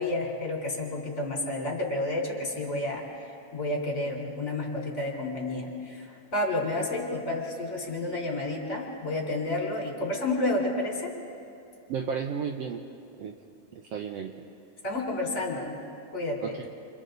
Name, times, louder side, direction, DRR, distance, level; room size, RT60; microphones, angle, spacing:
voice 1, 0.0-3.0 3.5-11.1 14.8-15.8 16.1-16.5, left 2 dB, 25° left, -1 dB, 4.0 m, -30 dB
voice 2, 11.9-12.8 13.2-13.4 13.7-14.3 16.4-16.7, right 6 dB, 70° right, 3 dB, 1.5 m, -33 dB
29.0 x 28.0 x 4.0 m, 2.6 s
omnidirectional pair, 3.7 m